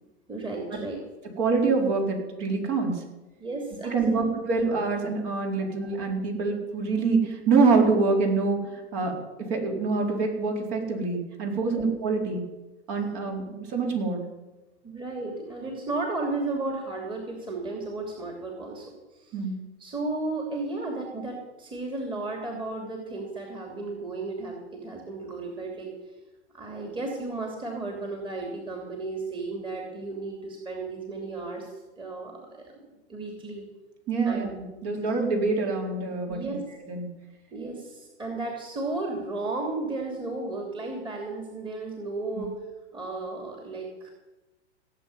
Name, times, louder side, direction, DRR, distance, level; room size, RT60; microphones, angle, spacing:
voice 1, 0.3-1.0 3.4-4.3 5.8-5.9 11.7-11.9 14.8-18.9 19.1-19.3 19.8-25.9 26.5-32.8 33.1-33.7 34.3-34.5 36.3-36.6 37.5-42.6 42.9-44.1, right 2 dB, 15° right, 1 dB, 3.0 m, -34 dB
voice 2, 1.4-3.0 3.8-12.4 12.9-14.2 19.3-19.6 34.1-36.6 36.9-37.1 42.4-42.5, right 4 dB, 40° right, 1 dB, 4.3 m, -26 dB
17.0 x 7.9 x 9.6 m, 1.1 s
hypercardioid pair, 125°, 34 cm